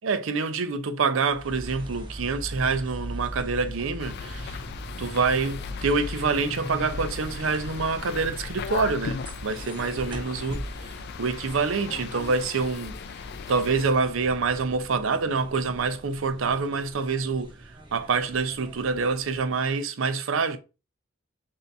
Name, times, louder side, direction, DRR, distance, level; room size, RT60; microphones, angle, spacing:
voice 1, 0.0-4.6 5.0-13.0 13.5-20.6, right 4 dB, 75° right, 0.5 m, -26 dB
sound 1, 1.3-19.7, right 1 dB, 25° right, 0.6 m, -41 dB
sound 2, 4.0-13.9, left 6 dB, 55° left, 0.3 m, -37 dB
3.4 x 2.8 x 3.9 m
head